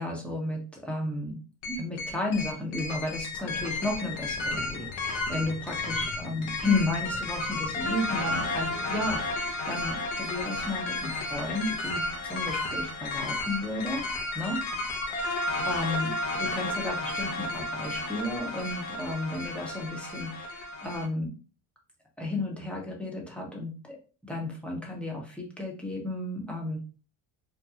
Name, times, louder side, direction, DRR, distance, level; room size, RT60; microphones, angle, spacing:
voice 1, 0.0-1.4 1.7-14.0 14.3-14.6 15.1-21.3 22.2-24.0 24.2-26.8, left 2 dB, ahead, -2 dB, 1.0 m, -33 dB
sound 1, 1.6-21.1, left 2 dB, 70° left, 0.9 m, -32 dB
sound 2, 3.3-10.7, left 6 dB, 35° left, 0.4 m, -46 dB
3.0 x 2.2 x 2.4 m, 0.37 s
supercardioid pair, 80°, 49 cm